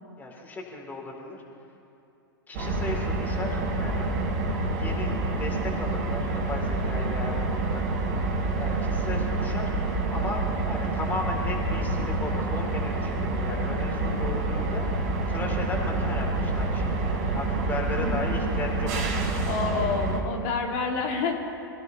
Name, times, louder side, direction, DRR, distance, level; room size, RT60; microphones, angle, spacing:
voice 1, 0.2-1.4 2.5-4.1 4.7-7.9 8.6-9.7 10.1-19.4, left 3 dB, 15° left, 0 dB, 3.5 m, -36 dB
sound 1, 2.5-20.2, right 2 dB, 50° right, 3.6 m, -27 dB
voice 2, 18.0-18.5 19.5-21.4, left 4 dB, 45° left, 0 dB, 2.6 m, -28 dB
27.0 x 16.0 x 3.3 m, 2.8 s
figure-of-eight pair, 95°, 12 cm